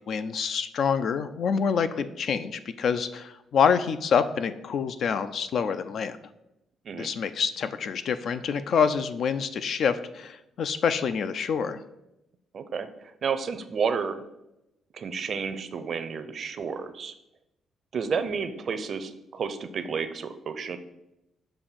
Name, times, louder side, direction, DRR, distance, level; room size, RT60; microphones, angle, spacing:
voice 1, 0.1-6.2 7.0-11.8, left 6 dB, 65° left, 11 dB, 0.4 m, -26 dB
voice 2, 12.5-14.2 14.9-17.1 17.9-20.8, right 6 dB, 50° right, 10 dB, 0.5 m, -31 dB
6.7 x 2.6 x 5.6 m, 0.89 s
cardioid pair, 90°, 0 cm